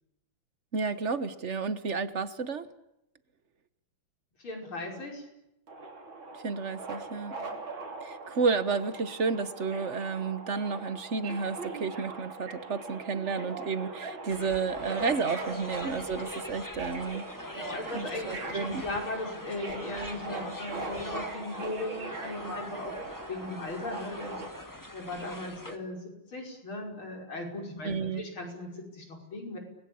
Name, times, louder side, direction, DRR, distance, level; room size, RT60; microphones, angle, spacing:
voice 1, 0.7-2.7 6.4-7.4 8.0-17.2 17.9-18.8 27.8-28.2, right 4 dB, 40° right, 12 dB, 1.3 m, -31 dB
voice 2, 4.4-5.2 7.3-7.5 15.4-15.7 17.5-22.9 23.3-24.4 24.9-26.0 26.3-29.6, left 2 dB, 80° left, 2 dB, 6.3 m, -38 dB
Subway metro underground, 5.7-24.5, right 3 dB, 75° right, 4.0 m, -41 dB
sound 1, 14.3-25.8, left 1 dB, 10° left, 1.6 m, -43 dB
30.0 x 21.0 x 8.7 m, 0.88 s
omnidirectional pair, 2.3 m